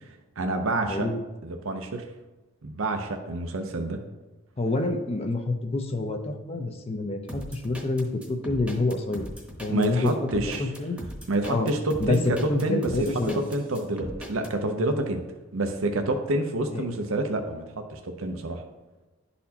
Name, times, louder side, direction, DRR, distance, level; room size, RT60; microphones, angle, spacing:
voice 1, 0.4-1.1 1.4-2.0 2.6-4.0 9.7-10.7 11.3-12.9 13.5-15.2 15.5-18.6, right 2 dB, 75° right, 5 dB, 0.6 m, -28 dB
voice 2, 4.6-9.3 9.6-10.3 10.6-11.0 11.4-11.7 12.0-12.2 12.5-13.4 16.7-16.9, left 2 dB, 30° left, 5 dB, 0.5 m, -27 dB
sound 1, 7.3-14.5, equal, 5° right, 0.9 m, -39 dB
11.5 x 4.2 x 2.8 m, 1.1 s
head